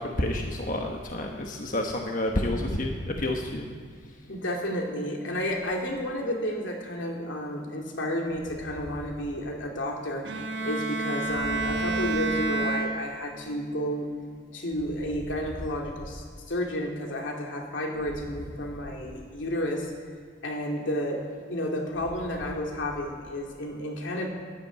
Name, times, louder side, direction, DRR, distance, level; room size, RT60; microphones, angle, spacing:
voice 1, 0.0-3.7, left 1 dB, 45° left, 2 dB, 1.1 m, -29 dB
voice 2, 4.3-10.3 10.6-14.1 14.5-19.9 20.4-21.2 21.5-24.3, equal, 85° left, 0 dB, 2.4 m, -31 dB
Bowed string instrument, 10.3-13.4, right 2 dB, 70° right, 1.3 m, -29 dB
11.0 x 10.5 x 8.3 m, 2.1 s
head